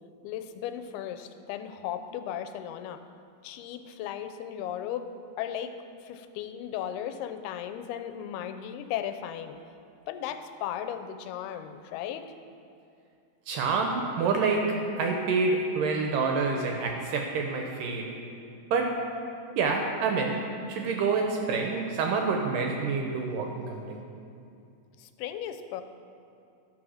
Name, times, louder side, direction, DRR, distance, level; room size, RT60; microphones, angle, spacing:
voice 1, 0.2-3.0 3.4-5.1 5.4-5.7 6.0-9.6 10.1-12.3 25.0-25.8, left 10 dB, 90° left, 9 dB, 2.5 m, -36 dB
voice 2, 13.5-18.2 18.7-19.1 19.6-24.0, right 4 dB, 75° right, 2 dB, 2.0 m, -27 dB
12.5 x 4.8 x 6.3 m, 2.5 s
omnidirectional pair, 4.4 m